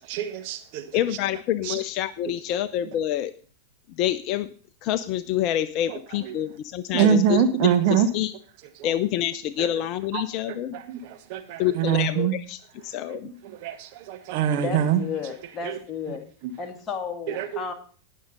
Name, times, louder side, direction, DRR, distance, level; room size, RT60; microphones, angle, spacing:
voice 1, 0.1-1.0 1.6-1.8 5.9-6.0 6.3-6.4 6.9-8.1 8.8-8.9 9.6-9.7 10.1-10.2 10.7-12.3 13.1-15.0 15.6-15.8 16.1-16.2 16.4-16.5 17.3-17.7, right 8 dB, 45° right, 7 dB, 1.5 m, -24 dB
voice 2, 0.9-3.3 3.9-4.5 4.8-8.3 8.8-10.7 11.6-13.3, left 12 dB, 40° left, 14 dB, 0.6 m, -27 dB
voice 3, 14.6-16.3 16.6-17.7, left 6 dB, 25° left, 5 dB, 2.0 m, -33 dB
18.5 x 6.4 x 4.0 m, 0.42 s
figure-of-eight pair, 90°, 0 cm